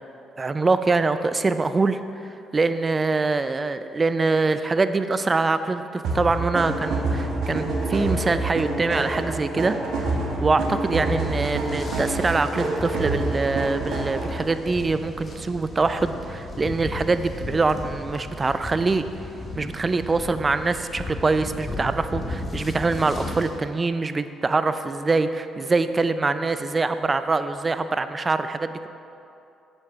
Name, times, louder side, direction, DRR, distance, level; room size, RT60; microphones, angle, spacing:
voice 1, 0.4-9.8 10.0-19.0 19.5-28.9, right 3 dB, 35° right, 11 dB, 0.4 m, -24 dB
sound 1, 6.0-14.5, right 2 dB, 75° right, 1.2 m, -27 dB
sound 2, 11.1-23.5, left 1 dB, 40° left, 1.7 m, -36 dB
8.1 x 7.2 x 3.5 m, 2.7 s
supercardioid pair, 60°, 0 cm